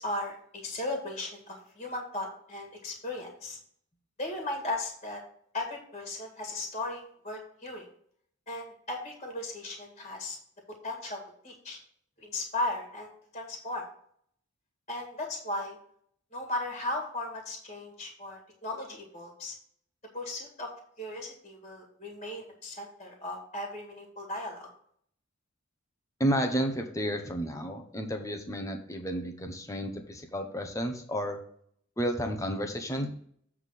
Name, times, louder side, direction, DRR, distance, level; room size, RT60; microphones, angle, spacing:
voice 1, 0.0-3.6 4.2-5.2 5.5-7.8 8.5-10.4 10.8-11.8 12.2-13.8 14.9-15.8 16.3-19.5 20.1-20.7 21.0-24.7, left 2 dB, 30° left, 1 dB, 1.9 m, -36 dB
voice 2, 26.2-31.4 32.0-33.1, equal, 15° left, 4 dB, 0.9 m, -31 dB
8.0 x 3.7 x 6.5 m, 0.62 s
head